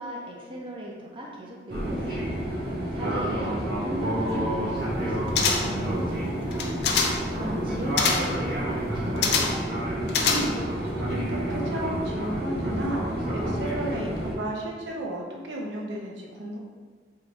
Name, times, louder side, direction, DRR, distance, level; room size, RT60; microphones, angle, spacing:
voice 1, 0.0-2.4 2.9-6.8 7.2-9.5, right 1 dB, 30° right, -2 dB, 0.5 m, -38 dB
Fixed-wing aircraft airplane, 1.7-14.3, right 1 dB, 60° right, 1.0 m, -29 dB
sound 1, 5.3-5.9 6.5-7.3 8.0-8.4 9.2-9.7 10.1-10.8 11.1-11.2, left 5 dB, 70° left, 0.5 m, -25 dB
voice 2, 7.3-8.0 10.2-10.6 11.1-16.6, right 1 dB, 85° right, -1 dB, 0.7 m, -33 dB
3.6 x 2.6 x 4.4 m, 1.5 s
head